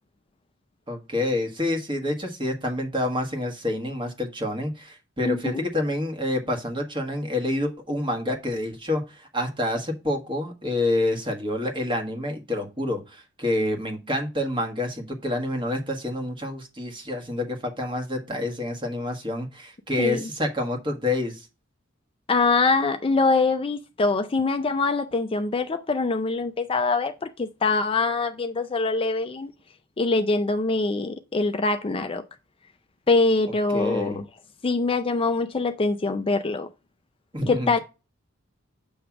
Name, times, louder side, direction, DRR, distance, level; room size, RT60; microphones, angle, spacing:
voice 1, 0.9-21.5 33.7-34.2 37.3-37.8, left 1 dB, 25° right, 1.4 m, -28 dB
voice 2, 5.2-5.6 20.0-20.3 22.3-29.5 30.0-32.3 33.1-34.3 34.6-36.7 37.5-37.8, left 3 dB, 30° left, 0.5 m, -24 dB
7.1 x 3.2 x 5.9 m
head